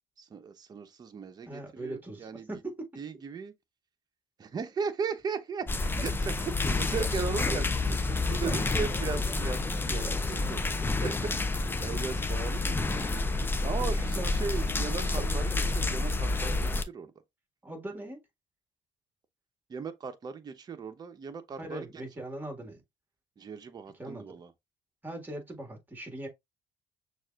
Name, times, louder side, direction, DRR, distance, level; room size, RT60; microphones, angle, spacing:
voice 1, 0.2-2.5 3.0-3.5 4.4-5.6 5.9-7.7 8.1-11.1 11.6-12.8 13.6-17.1 19.7-22.0 23.4-24.5, right 6 dB, 35° right, 0.8 m, -37 dB
voice 2, 1.5-2.9 6.6-6.7 7.0-7.1 7.5-7.6 8.4-9.2 10.0-10.2 11.8-12.0 13.8-14.3 14.8-15.6 17.6-18.2 21.6-22.8 23.9-24.3 25.0-26.3, right 2 dB, 15° right, 1.7 m, -40 dB
sound 1, 5.7-16.8, left 3 dB, 20° left, 0.5 m, -29 dB
6.2 x 2.5 x 2.4 m
cardioid pair, 95°, 11 cm